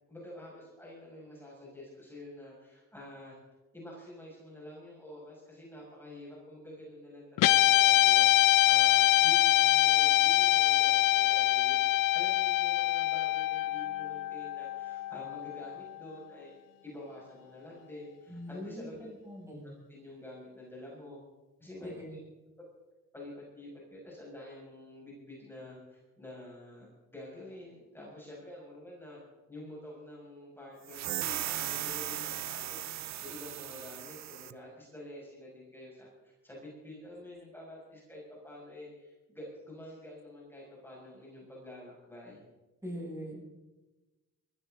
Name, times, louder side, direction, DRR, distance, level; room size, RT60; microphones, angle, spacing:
voice 1, 0.1-3.4 3.7-16.5 16.8-19.1 19.5-21.2 21.6-22.2 22.6-22.7 23.1-29.2 29.5-42.4, left 1 dB, 5° left, -5 dB, 6.2 m, -48 dB
Guitar, 7.4-15.9, left 16 dB, 90° left, 0.8 m, -24 dB
voice 2, 18.3-19.7 21.8-22.2 42.8-43.5, equal, 10° right, -3 dB, 7.0 m, -42 dB
sound 1, 30.9-34.5, right 12 dB, 55° right, 0.7 m, -37 dB
21.0 x 15.5 x 3.9 m, 1.1 s
cardioid pair, 105°, 32 cm